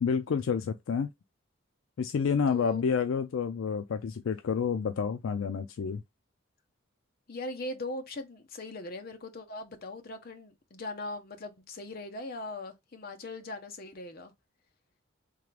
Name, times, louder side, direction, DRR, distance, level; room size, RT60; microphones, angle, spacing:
voice 1, 0.0-1.1 2.0-6.0, left 6 dB, 70° left, 0.4 m, -29 dB
voice 2, 2.5-2.9 7.3-14.3, left 2 dB, 45° left, 0.8 m, -40 dB
3.7 x 3.3 x 3.2 m
head